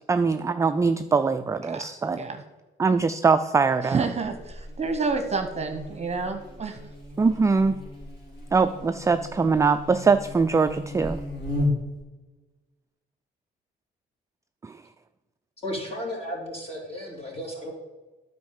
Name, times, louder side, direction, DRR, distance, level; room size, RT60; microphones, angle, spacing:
voice 1, 0.1-2.2 2.8-4.1 7.2-7.8 8.5-11.2 14.6-14.8, right 4 dB, 15° right, 9 dB, 0.3 m, -22 dB
voice 2, 3.8-6.8, right 4 dB, 35° right, 7 dB, 1.0 m, -29 dB
Buzz, 4.2-12.0, left 2 dB, 50° left, 3.2 m, -35 dB
voice 3, 15.6-17.7, equal, 30° left, -2 dB, 3.3 m, -34 dB
9.5 x 4.6 x 7.2 m, 1.2 s
cardioid pair, 90°, 20 cm